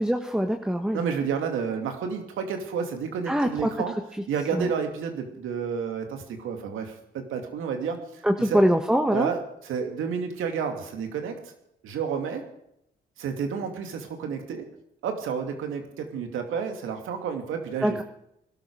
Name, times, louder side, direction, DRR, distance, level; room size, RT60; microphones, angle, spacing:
voice 1, 0.0-1.0 3.3-3.7 4.5-4.7 8.2-9.3 17.8-18.0, equal, 5° right, 5 dB, 1.4 m, -23 dB
voice 2, 0.9-3.9 4.3-8.6 9.1-11.4 11.8-12.4 13.2-14.6 15.0-18.0, right 6 dB, 85° right, 5 dB, 2.6 m, -30 dB
20.0 x 12.5 x 4.9 m, 0.76 s
supercardioid pair, 65°, 20 cm